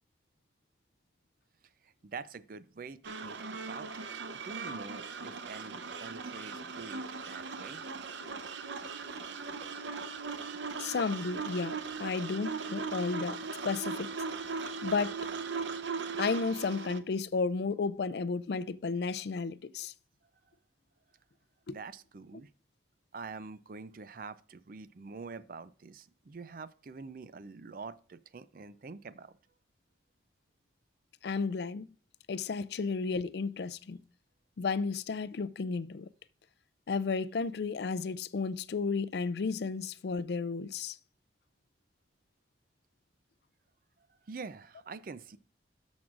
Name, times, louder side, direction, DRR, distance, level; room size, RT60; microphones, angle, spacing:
voice 1, 1.8-3.4 3.7-4.1 4.3-7.8 21.7-22.5 23.1-29.3 44.2-45.4, right 4 dB, 50° right, 0.5 m, -46 dB
sound 1, 3.0-17.0, right 4 dB, 85° right, 0.7 m, -39 dB
voice 2, 10.8-13.4 13.6-14.1 14.8-15.3 16.2-19.9 21.7-21.8 31.2-31.9 32.3-34.0 34.6-36.1 36.9-41.0, left 4 dB, 60° left, 0.4 m, -33 dB
13.0 x 6.1 x 2.5 m
head